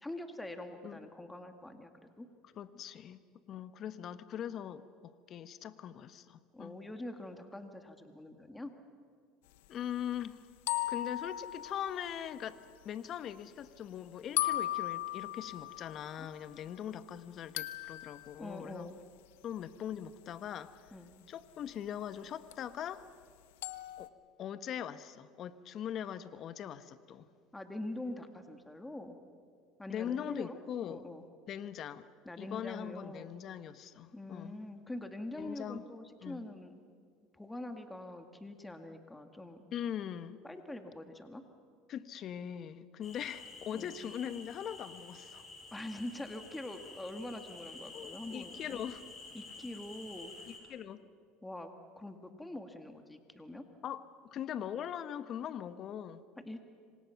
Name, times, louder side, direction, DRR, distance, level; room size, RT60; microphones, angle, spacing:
voice 1, 0.0-2.3 6.5-8.7 16.2-16.3 18.4-18.9 20.9-21.1 27.5-29.2 29.8-30.6 30.9-31.2 32.3-33.3 34.1-36.8 37.3-39.6 40.4-41.4 43.7-43.9 45.7-48.8 49.3-50.3 51.4-53.7 56.5-56.6, left 1 dB, 10° left, 6 dB, 2.1 m, -44 dB
voice 2, 2.6-3.2 3.5-6.8 9.7-10.4 10.9-18.9 19.4-20.7 21.3-23.1 24.0-24.1 24.4-27.3 29.9-31.0 31.5-32.1 32.4-34.6 35.4-35.8 36.2-36.4 39.7-40.4 41.9-45.4 47.9-49.0 50.5-51.0 53.8-54.0 54.3-56.2, left 9 dB, 50° left, 13 dB, 1.2 m, -41 dB
sound 1, 10.7-12.6 14.4-16.7 17.6-18.4 22.5-22.6 23.6-24.1, left 15 dB, 80° left, 0.9 m, -37 dB
sound 2, 43.0-50.6, left 3 dB, 35° left, 6.8 m, -50 dB
26.5 x 25.0 x 5.9 m, 2.1 s
hypercardioid pair, 85°, 0 cm